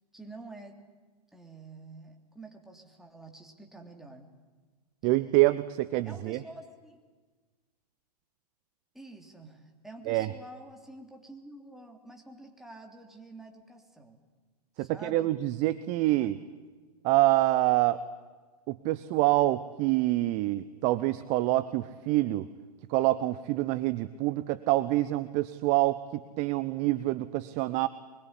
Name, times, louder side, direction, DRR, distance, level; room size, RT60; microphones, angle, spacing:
voice 1, 0.1-0.8 1.3-4.3 6.0-7.0 8.9-14.2 14.8-15.3 16.2-16.6, right 2 dB, ahead, 2 dB, 3.3 m, -48 dB
voice 2, 5.0-6.4 10.1-10.3 14.8-16.4 17.0-18.0 18.7-22.4 22.9-27.9, right 17 dB, 35° right, 13 dB, 0.9 m, -26 dB
23.5 x 22.0 x 10.0 m, 1.4 s
hypercardioid pair, 115°, 21 cm